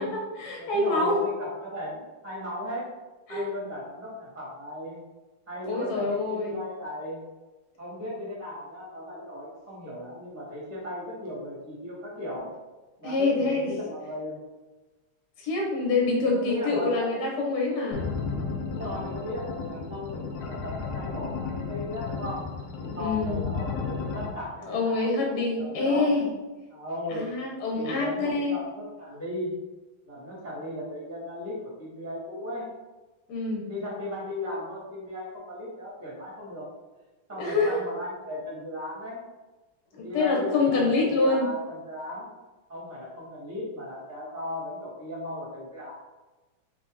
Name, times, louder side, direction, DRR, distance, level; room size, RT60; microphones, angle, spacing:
voice 1, 0.0-1.2 3.3-3.4 5.6-6.6 13.0-13.7 15.4-18.1 23.0-23.4 24.7-26.3 27.1-28.6 33.3-33.7 37.4-37.8 40.0-41.5, left 3 dB, 60° left, -1 dB, 1.2 m, -26 dB
voice 2, 0.6-2.9 3.3-5.0 5.5-7.2 7.8-12.5 13.0-14.4 16.3-17.3 18.6-22.4 22.7-25.1 25.5-26.1 26.7-27.3 27.7-29.5 30.1-32.7 33.6-36.7 37.3-39.2 39.9-42.3 42.7-45.9, left 1 dB, 10° right, -6 dB, 0.9 m, -36 dB
sound 1, 17.9-24.3, left 5 dB, 80° left, 0.8 m, -33 dB
4.0 x 2.8 x 3.5 m, 1.2 s
omnidirectional pair, 2.2 m